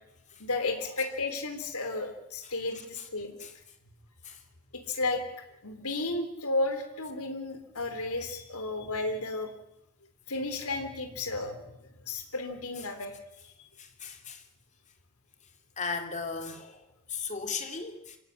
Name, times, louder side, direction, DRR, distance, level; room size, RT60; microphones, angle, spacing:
voice 1, 0.4-3.4 4.9-5.2 5.6-9.5 10.3-11.8 12.1-13.1, left 2 dB, 75° left, 6 dB, 3.8 m, -33 dB
voice 2, 13.8-14.4 15.8-16.8 17.1-18.2, left 5 dB, 35° left, 5 dB, 3.2 m, -36 dB
26.5 x 16.0 x 9.7 m, 0.89 s
head